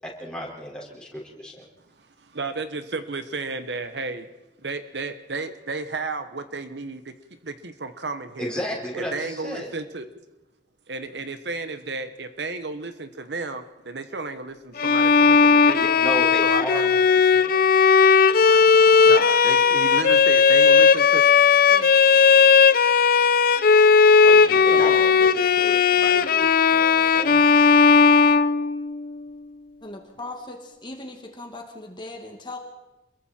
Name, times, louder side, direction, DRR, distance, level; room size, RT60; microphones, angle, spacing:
voice 1, 0.0-1.6 8.4-9.7 15.7-17.2 17.5-18.2 24.2-27.4, equal, 5° left, -3 dB, 5.0 m, -33 dB
voice 2, 2.0-4.3 4.6-7.1 7.4-8.5 8.9-10.1 10.9-15.9 16.4-17.5 18.5-18.7 19.0-21.2 24.5-25.1, right 3 dB, 65° right, 10 dB, 1.1 m, -33 dB
Bowed string instrument, 14.8-29.1, left 5 dB, 55° left, 0.7 m, -16 dB
voice 3, 29.8-32.6, left 2 dB, 25° left, 2 dB, 2.2 m, -38 dB
28.0 x 22.0 x 4.5 m, 1.0 s
head